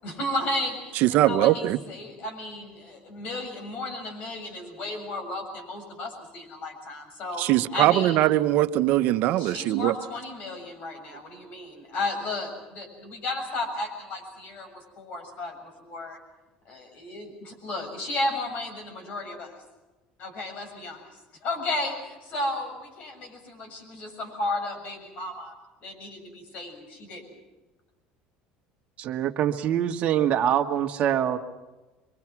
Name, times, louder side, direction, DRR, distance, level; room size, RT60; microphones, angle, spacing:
voice 1, 0.0-7.4 7.7-8.2 9.4-15.6 15.8-16.2 16.7-19.5 20.2-21.0 21.4-25.5 25.8-27.2, left 2 dB, 55° left, 5 dB, 7.1 m, -33 dB
voice 2, 0.9-1.8 7.4-10.0, right 14 dB, 60° right, 10 dB, 1.0 m, -21 dB
voice 3, 29.0-31.4, right 10 dB, 45° right, 4 dB, 1.8 m, -24 dB
26.0 x 23.5 x 6.1 m, 1.1 s
cardioid pair, 135°, 3 cm